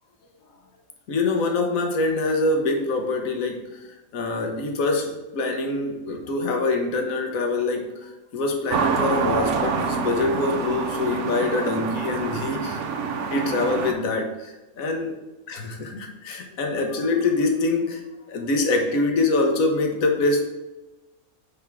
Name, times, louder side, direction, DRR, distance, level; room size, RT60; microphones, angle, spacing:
voice 1, 1.1-3.8 4.1-15.1 15.5-20.4, left 2 dB, 70° left, 3 dB, 1.5 m, -25 dB
sound 1, 8.7-13.9, right 5 dB, 60° right, 1.0 m, -26 dB
8.3 x 3.6 x 6.1 m, 1.0 s
omnidirectional pair, 1.6 m